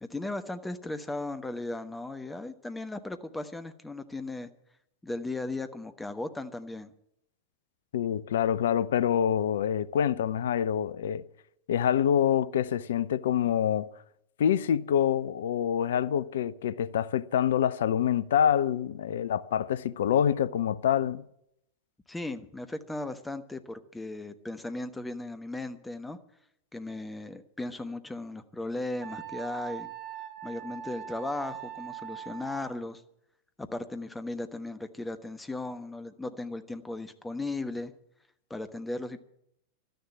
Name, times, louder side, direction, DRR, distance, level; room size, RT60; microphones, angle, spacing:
voice 1, 0.0-4.5 5.0-6.9 22.1-26.2 26.7-29.9 30.4-33.0 33.6-37.9 38.5-39.2, left 2 dB, 10° left, 1.1 m, -36 dB
voice 2, 7.9-11.3 11.7-13.9 14.4-21.2, left 9 dB, 60° left, 0.6 m, -26 dB
Wind instrument woodwind instrument, 29.0-32.8, right 10 dB, 35° right, 4.5 m, -41 dB
12.5 x 10.5 x 8.5 m
figure-of-eight pair, 90°, 0 cm